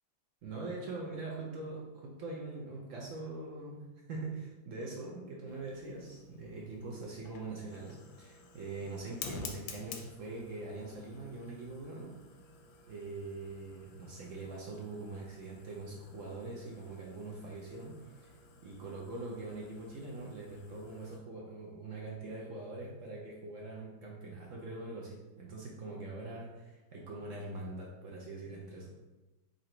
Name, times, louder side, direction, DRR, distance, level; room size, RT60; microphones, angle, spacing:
voice 1, 0.4-12.1 12.9-18.3 18.6-28.9, right 2 dB, 75° right, -2 dB, 0.7 m, -43 dB
Fire, 5.5-21.2, left 5 dB, 80° left, 1.3 m, -51 dB
3.9 x 2.7 x 4.4 m, 1.1 s
omnidirectional pair, 2.1 m